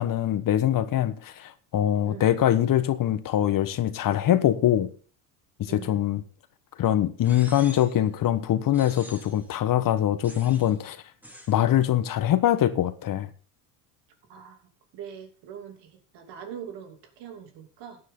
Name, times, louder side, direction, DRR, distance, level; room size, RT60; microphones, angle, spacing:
voice 1, 0.0-4.9 5.6-6.2 6.8-11.0 11.5-13.3, left 11 dB, 45° left, 1.3 m, -23 dB
voice 2, 5.7-6.0 14.3-14.6 14.9-18.0, right 8 dB, 60° right, 3.0 m, -42 dB
sound 1, 7.2-8.0 8.7-9.5 10.2-10.8 11.2-11.6, left 1 dB, 5° right, 3.0 m, -46 dB
14.5 x 9.6 x 3.8 m
supercardioid pair, 85°, 46 cm